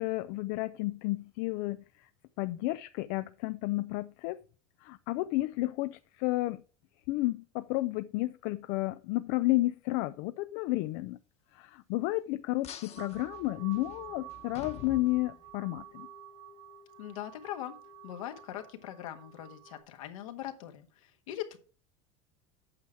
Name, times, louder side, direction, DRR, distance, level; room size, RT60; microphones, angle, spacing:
voice 1, 0.0-2.1 2.4-4.4 4.8-6.6 7.1-11.2 11.5-16.1, left 19 dB, 65° left, 0.5 m, -32 dB
sound 1, 12.6-15.8, left 9 dB, 40° left, 1.2 m, -48 dB
sound 2, 13.0-19.8, right 9 dB, 85° right, 2.2 m, -50 dB
voice 2, 17.0-21.6, left 12 dB, 80° left, 1.5 m, -41 dB
8.6 x 6.2 x 4.5 m
supercardioid pair, 100°, 17 cm